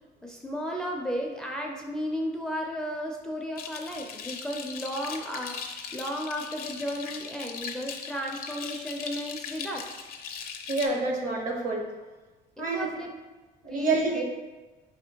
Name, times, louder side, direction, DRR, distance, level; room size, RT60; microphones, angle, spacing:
voice 1, 0.2-9.9 11.2-11.3 12.6-13.2 13.7-14.2, equal, 5° left, 0 dB, 0.4 m, -34 dB
sound 1, 3.6-10.9, left 6 dB, 60° left, 0.6 m, -39 dB
voice 2, 10.7-11.9 12.6-12.9 13.6-14.2, right 3 dB, 50° right, 1 dB, 0.9 m, -27 dB
4.7 x 3.5 x 2.8 m, 1.2 s
cardioid pair, 110°, 17 cm